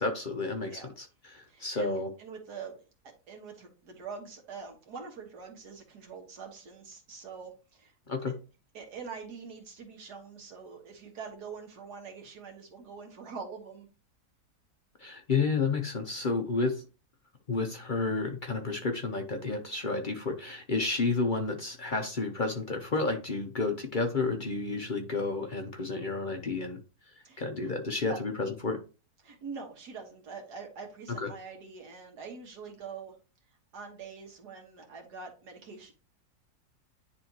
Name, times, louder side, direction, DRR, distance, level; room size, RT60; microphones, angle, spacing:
voice 1, 0.0-2.1 8.1-8.3 15.0-16.8 17.5-26.8 27.4-28.8 31.2-31.3, left 3 dB, 40° left, 4 dB, 0.7 m, -31 dB
voice 2, 1.5-7.9 8.7-13.9 27.2-27.7 28.1-28.2 29.2-33.2 33.7-35.9, right 5 dB, 90° right, 2 dB, 2.1 m, -44 dB
9.9 x 3.4 x 2.9 m, 0.33 s
omnidirectional pair, 1.7 m